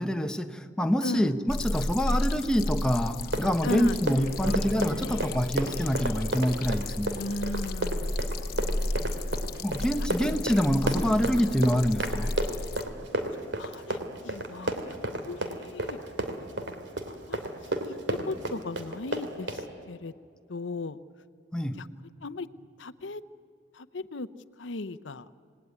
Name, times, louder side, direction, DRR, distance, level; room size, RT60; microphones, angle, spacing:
voice 1, 0.0-7.2 9.6-12.3 21.5-21.8, equal, 5° left, 6 dB, 1.0 m, -26 dB
voice 2, 1.0-1.3 3.6-4.0 4.4-4.6 4.8-5.3 7.2-8.2 8.5-9.3 10.0-10.4 13.3-15.0 15.2-16.0 17.1-17.4 17.8-20.1 20.5-21.0 21.7-21.9 22.2-22.5 22.8-23.2 23.7-24.3 24.6-25.3, left 3 dB, 80° left, 14 dB, 0.8 m, -37 dB
sound 1, 1.5-12.8, left 1 dB, 55° left, 1.2 m, -33 dB
Run, 3.2-19.7, right 1 dB, 70° right, 2.9 m, -32 dB
28.0 x 19.5 x 9.7 m, 2.3 s
head